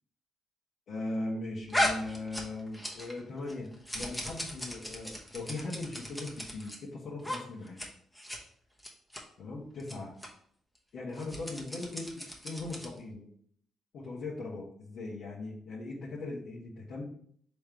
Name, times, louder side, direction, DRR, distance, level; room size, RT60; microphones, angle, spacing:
voice 1, 0.9-3.7 3.9-7.8 9.4-10.1 10.9-12.1 12.4-13.3 13.9-17.0, left 2 dB, 65° left, -6 dB, 1.1 m, -39 dB
sound 1, 1.7-3.2 3.5-6.8 7.2-7.4 7.7-7.9 8.2-8.4 8.8-9.2 9.8-9.9 10.2-10.3 11.1-13.0, left 1 dB, 5° left, 0.9 m, -36 dB
3.7 x 3.1 x 4.5 m, 0.62 s
cardioid pair, 90°, 0 cm